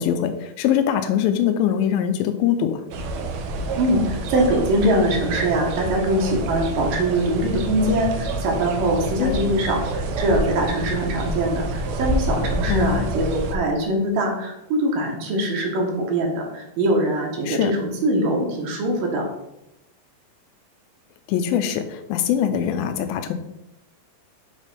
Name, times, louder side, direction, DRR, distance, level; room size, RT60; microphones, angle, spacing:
voice 1, 0.0-2.8 9.2-9.5 12.7-13.1 17.5-17.7 21.3-23.3, left 9 dB, 85° left, 8 dB, 2.3 m, -22 dB
sound 1, 2.9-13.6, right 2 dB, 90° right, 1.5 m, -27 dB
voice 2, 3.7-19.3, right 1 dB, 70° right, 1 dB, 2.7 m, -23 dB
7.3 x 3.4 x 5.4 m, 0.88 s
omnidirectional pair, 4.2 m